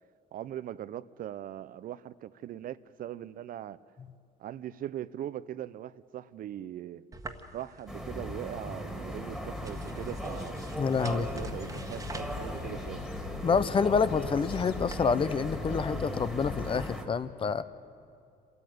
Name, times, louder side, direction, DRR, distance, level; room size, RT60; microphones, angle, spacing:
voice 1, 0.3-3.8 4.4-7.1 7.5-10.6 11.1-13.1, right 11 dB, 55° right, 0.6 m, -40 dB
sound 1, 7.1-15.1, right 2 dB, 20° right, 1.5 m, -49 dB
sound 2, 7.9-17.0, equal, ahead, 2.3 m, -37 dB
voice 2, 10.8-11.3 13.4-17.6, left 5 dB, 30° left, 0.8 m, -27 dB
sound 3, 11.2-16.8, left 12 dB, 75° left, 0.6 m, -44 dB
27.0 x 13.5 x 9.4 m
cardioid pair, 110°, 17 cm